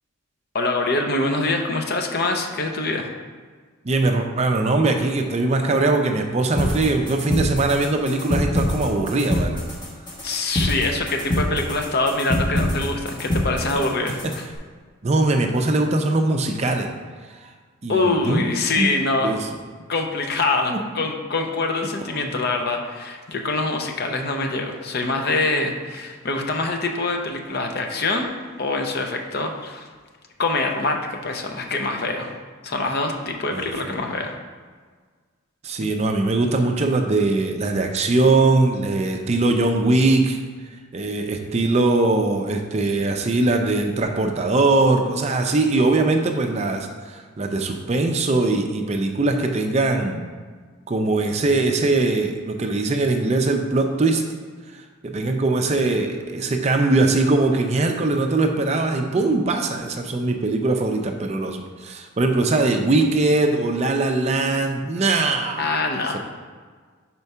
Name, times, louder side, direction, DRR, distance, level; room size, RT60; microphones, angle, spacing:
voice 1, 0.5-3.1 10.2-14.4 17.9-19.3 19.9-28.3 28.6-29.9 30.4-32.3 32.6-34.3 35.8-35.9 65.6-66.2, left 2 dB, 50° left, 3 dB, 0.7 m, -24 dB
voice 2, 3.8-9.6 14.2-14.3 15.0-16.9 17.3-17.5 17.8-18.4 18.8-18.9 19.2-19.4 20.7-20.8 22.1-22.3 33.5-34.0 35.6-40.4 40.9-50.2 50.9-54.2 54.7-65.6 66.1-66.2, right 2 dB, 30° right, 4 dB, 0.4 m, -21 dB
sound 1, 6.6-14.6, left 1 dB, 20° left, 1.2 m, -25 dB
4.7 x 4.4 x 5.5 m, 1.5 s
head